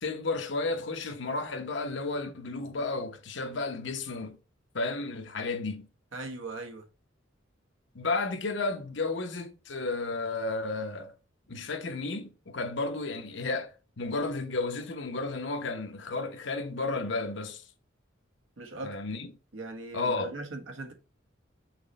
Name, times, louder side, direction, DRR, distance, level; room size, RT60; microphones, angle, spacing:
voice 1, 0.0-4.4 4.7-5.9 7.9-11.1 11.5-17.6 18.8-19.3 19.9-20.3, left 3 dB, 60° left, 0.9 m, -32 dB
voice 2, 6.1-6.9 18.6-19.0 19.5-20.9, right 2 dB, 75° right, 1.3 m, -39 dB
6.0 x 3.2 x 5.3 m
head